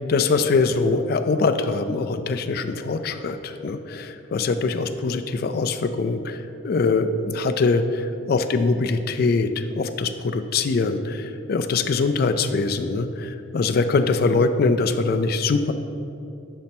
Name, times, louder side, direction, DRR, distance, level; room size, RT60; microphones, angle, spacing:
voice 1, 0.0-15.7, left 3 dB, 50° left, 8 dB, 0.3 m, -23 dB
5.2 x 4.2 x 5.9 m, 2.7 s
head